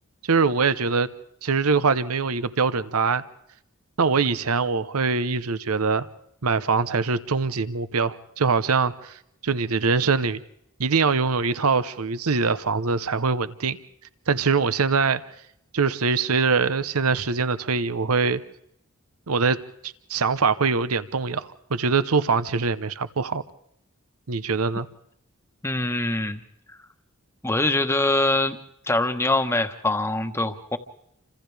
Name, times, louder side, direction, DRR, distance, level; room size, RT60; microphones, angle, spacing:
voice 1, 0.3-1.1 1.4-3.2 4.0-6.1 6.4-9.2 9.4-10.4 10.8-13.8 14.3-15.2 15.7-18.4 19.3-23.4 24.3-24.9, right 4 dB, 85° right, 14 dB, 0.9 m, -23 dB
voice 2, 25.6-26.4 27.4-28.6 28.9-30.8, left 2 dB, 10° left, 7 dB, 1.2 m, -23 dB
29.5 x 26.0 x 3.5 m, 0.75 s
head